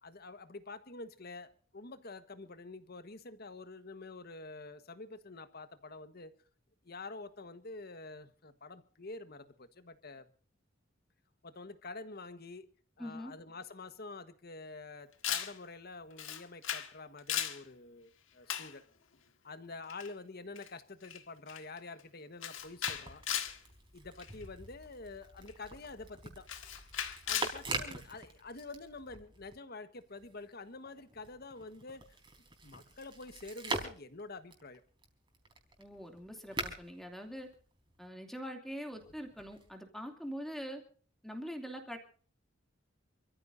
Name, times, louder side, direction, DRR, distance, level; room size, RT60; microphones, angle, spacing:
voice 1, 0.0-6.3 6.8-10.3 11.4-12.7 13.0-18.8 19.4-23.2 23.9-26.5 27.3-32.0 32.6-34.8, left 3 dB, 50° left, 1.4 m, -47 dB
voice 2, 13.0-13.3 35.8-37.5 38.0-40.8 41.2-42.0, equal, ahead, 2.7 m, -43 dB
Camera, 15.2-15.6 16.2-16.9 17.2-17.6 18.5-18.7 19.9-20.1 20.6-20.7 21.0-21.2 21.5-21.8 22.4-23.6 24.2-24.4 25.5-25.6 26.5-27.6, left 10 dB, 75° left, 1.7 m, -36 dB
sound 1, 22.6-29.6 29.9-38.1 38.9-39.7, right 3 dB, 25° right, 3.9 m, -44 dB
28.0 x 14.5 x 2.7 m
head